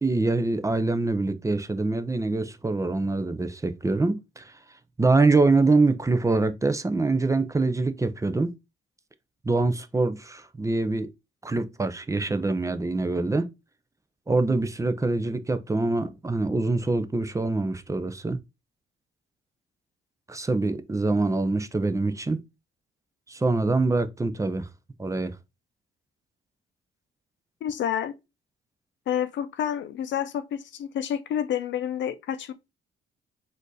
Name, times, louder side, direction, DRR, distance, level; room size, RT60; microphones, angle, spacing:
voice 1, 0.0-4.6 5.0-8.5 9.4-11.1 11.4-13.5 14.3-18.4 20.3-22.4 23.3-24.7 25.0-25.3, right 3 dB, 15° right, 0.6 m, -24 dB
voice 2, 27.6-28.1 29.1-32.5, left 9 dB, 70° left, 0.7 m, -29 dB
4.2 x 2.7 x 4.6 m
cardioid pair, 90°, 20 cm